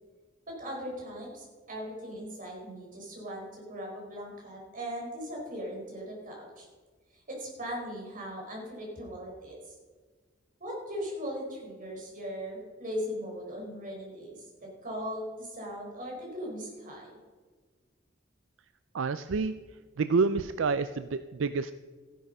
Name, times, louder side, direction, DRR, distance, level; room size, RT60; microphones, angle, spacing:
voice 1, 0.5-6.7 7.1-9.7 10.6-17.2, equal, 45° right, -1 dB, 4.9 m, -39 dB
voice 2, 18.9-19.5 20.0-21.7, right 4 dB, 75° right, 12 dB, 0.4 m, -28 dB
15.0 x 10.5 x 5.5 m, 1.5 s
head